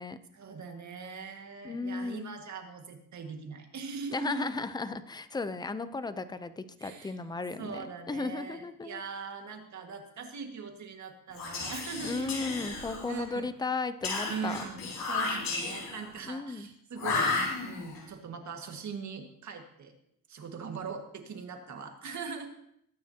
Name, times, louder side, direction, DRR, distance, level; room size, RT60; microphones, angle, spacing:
voice 1, 0.3-4.5 6.8-7.1 7.6-13.5 14.3-17.3 17.6-19.9 20.3-22.5, right 5 dB, 50° right, 4 dB, 1.9 m, -41 dB
voice 2, 1.6-2.3 4.1-9.0 12.0-14.6 16.2-16.7, left 3 dB, 10° left, 12 dB, 0.5 m, -35 dB
Whispering, 11.3-13.3 14.0-16.1 17.0-18.0, left 3 dB, 65° left, 4.6 m, -33 dB
21.0 x 9.4 x 2.9 m, 0.73 s
cardioid pair, 135°, 38 cm